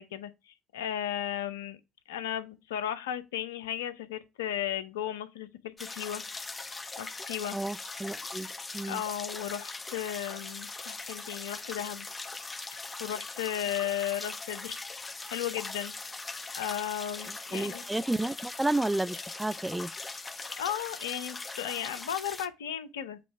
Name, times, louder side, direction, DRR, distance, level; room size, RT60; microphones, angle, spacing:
voice 1, 0.0-1.8 2.1-6.2 7.0-7.6 8.9-12.1 12.7-14.8 15.3-15.9 16.5-17.8 20.6-23.2, left 10 dB, 85° left, 0.7 m, -35 dB
sound 1, 5.8-22.5, left 3 dB, 25° left, 0.8 m, -41 dB
voice 2, 7.5-8.5 8.7-9.0 17.3-19.9, right 2 dB, 10° right, 0.4 m, -31 dB
7.7 x 3.1 x 4.6 m
hypercardioid pair, 60°, 0 cm